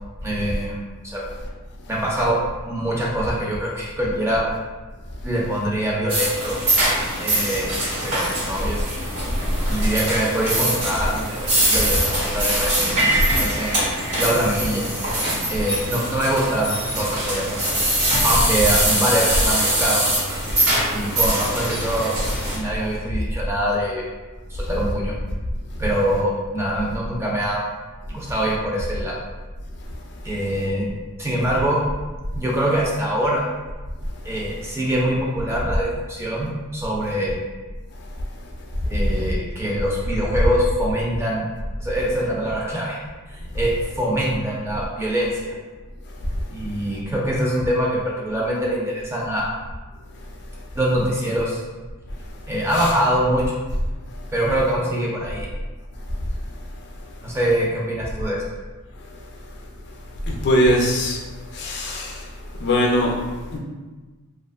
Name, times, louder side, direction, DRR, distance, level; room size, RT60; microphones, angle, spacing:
voice 1, 0.2-1.2 1.9-4.5 5.2-6.6 7.2-7.7 8.0-8.8 9.7-13.7 14.2-14.9 15.5-17.7 18.2-20.1 20.9-22.1 22.5-24.0 24.5-25.1 25.8-27.7 28.1-29.2 30.2-30.9 31.2-31.8 32.3-33.5 34.2-37.4 38.9-41.4 41.8-43.0 43.3-45.5 46.5-49.5 50.8-51.6 52.5-53.4 54.3-55.5 57.2-58.4, right 1 dB, 10° right, -4 dB, 0.4 m, -24 dB
sound 1, 6.1-22.6, right 1 dB, 90° right, 1.3 m, -23 dB
voice 2, 60.3-61.2 61.5-62.2 62.6-63.1 63.5-63.6, equal, 50° left, -1 dB, 0.4 m, -20 dB
2.4 x 2.4 x 2.4 m, 1.3 s
head